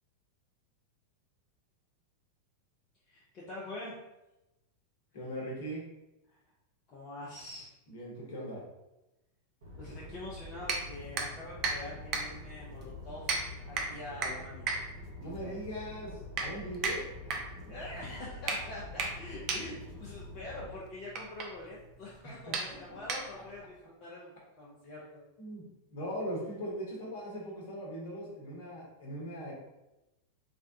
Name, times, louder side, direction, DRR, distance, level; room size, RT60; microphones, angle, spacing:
voice 1, 3.1-4.0 6.3-6.4 6.9-7.7 9.8-14.8 15.4-15.5 17.7-25.2, left 1 dB, 35° left, -6 dB, 0.7 m, -45 dB
voice 2, 5.1-5.8 7.9-8.6 15.2-17.4 22.2-22.6 22.9-23.0 25.4-25.6 25.9-29.5, equal, 55° left, -3 dB, 1.1 m, -40 dB
sound 1, 9.6-20.7, left 2 dB, 65° right, 0.9 m, -46 dB
sound 2, 10.6-23.7, right 4 dB, 40° right, 0.5 m, -37 dB
3.4 x 2.2 x 2.6 m, 0.94 s
figure-of-eight pair, 90°, 0 cm